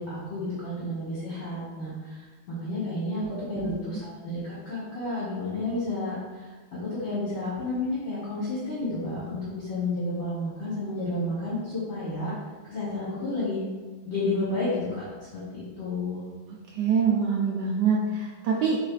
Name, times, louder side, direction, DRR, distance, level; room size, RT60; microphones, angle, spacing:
voice 1, 0.0-3.2 3.5-6.5 6.8-12.3 12.7-13.6 14.0-15.0 15.3-16.3, left 2 dB, 45° left, -9 dB, 1.4 m, -31 dB
voice 2, 3.3-3.7 16.7-18.8, right 6 dB, 75° right, -2 dB, 1.0 m, -25 dB
6.6 x 3.2 x 2.3 m, 1.3 s
omnidirectional pair, 2.2 m